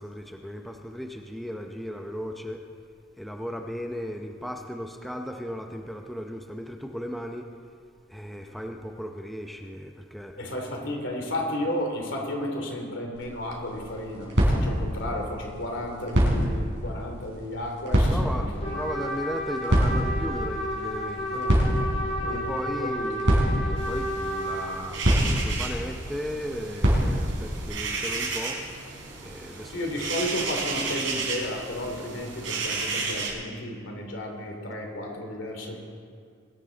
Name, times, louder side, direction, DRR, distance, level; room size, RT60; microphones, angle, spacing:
voice 1, 0.0-2.6 3.2-7.5 8.1-10.5 18.1-18.5 18.7-21.4 22.3-28.6 29.2-29.8, equal, ahead, 3 dB, 0.7 m, -36 dB
voice 2, 10.4-18.8 21.3-21.6 22.2-23.1 29.7-35.8, left 1 dB, 75° left, 1 dB, 2.9 m, -33 dB
sound 1, 13.1-27.7, equal, 65° right, 4.5 m, -27 dB
Trumpet, 18.6-24.8, equal, 30° left, 2.1 m, -31 dB
sound 2, 23.8-33.3, right 4 dB, 85° right, 3.3 m, -33 dB
22.0 x 11.5 x 3.9 m, 2.2 s
head